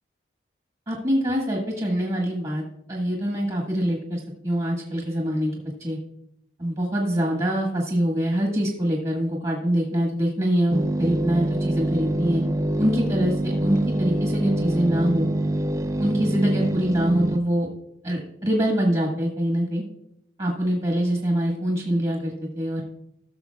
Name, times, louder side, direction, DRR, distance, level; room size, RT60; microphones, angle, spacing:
voice 1, 0.9-5.5 5.8-6.0 6.6-12.4 12.8-15.3 16.0-17.7 18.0-19.8 20.4-22.8, equal, 35° right, -1 dB, 1.6 m, -24 dB
sound 1, 10.7-17.4, right 1 dB, 15° right, 0.3 m, -25 dB
16.0 x 6.7 x 2.4 m, 0.78 s
head